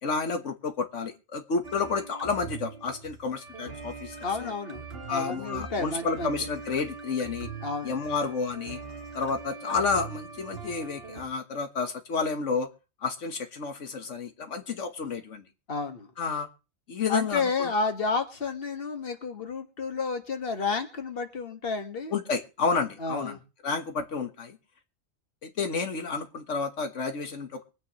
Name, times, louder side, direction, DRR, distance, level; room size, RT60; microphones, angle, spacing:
voice 1, 0.0-4.1 4.4-4.5 5.1-7.5 7.8-8.8 9.1-12.7 13.0-15.4 16.2-16.5 16.9-17.7 22.1-23.4 23.6-24.6 25.4-27.6, left 4 dB, 85° left, 7 dB, 1.7 m, -30 dB
sound 1, 1.6-11.2, right 4 dB, 55° right, 1.9 m, -42 dB
voice 2, 4.2-6.3 7.6-7.9 15.7-16.1 17.1-22.1 23.0-23.4, left 4 dB, 50° left, 7 dB, 1.9 m, -31 dB
23.5 x 9.6 x 3.1 m, 0.32 s
omnidirectional pair, 1.2 m